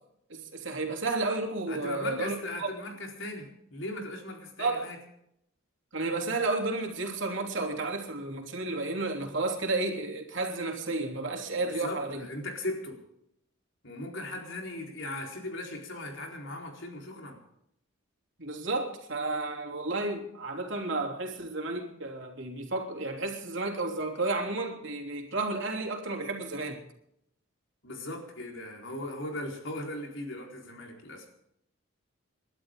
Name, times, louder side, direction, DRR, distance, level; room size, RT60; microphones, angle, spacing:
voice 1, 0.3-2.7 4.6-4.9 5.9-12.3 18.4-26.8, right 2 dB, 65° right, 3.2 m, -32 dB
voice 2, 1.7-5.0 11.5-13.0 13.8-17.4 27.8-31.3, left 1 dB, 65° left, 4.3 m, -38 dB
29.0 x 12.0 x 3.8 m
head